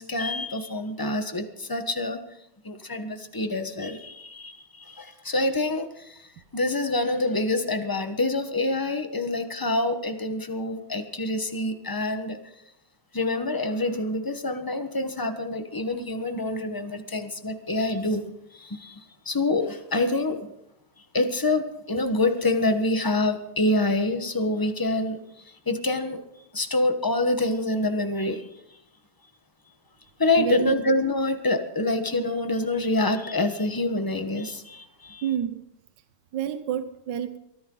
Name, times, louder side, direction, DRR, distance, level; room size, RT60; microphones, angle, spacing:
voice 1, 0.0-2.2 2.6-6.3 6.5-12.4 13.1-18.2 18.5-20.4 21.1-25.2 25.7-26.2 26.5-28.4 30.2-35.3, left 2 dB, 15° left, 7 dB, 1.0 m, -26 dB
voice 2, 30.4-30.7 35.2-35.6 36.3-37.4, right 9 dB, 70° right, 10 dB, 1.5 m, -28 dB
23.5 x 14.5 x 3.9 m, 0.79 s
omnidirectional pair, 2.1 m